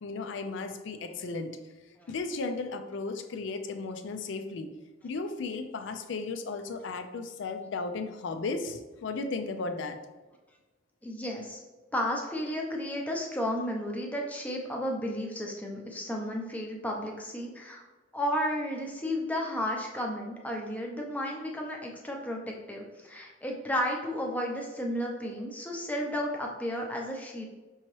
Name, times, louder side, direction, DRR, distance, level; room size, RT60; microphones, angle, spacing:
voice 1, 0.0-1.5 2.1-4.7 5.0-10.0, left 3 dB, 65° left, 7 dB, 0.4 m, -35 dB
voice 2, 11.0-11.6 11.9-17.8 18.1-22.4 22.7-27.5, equal, 10° left, 0 dB, 0.6 m, -33 dB
5.5 x 2.9 x 3.1 m, 1.2 s
head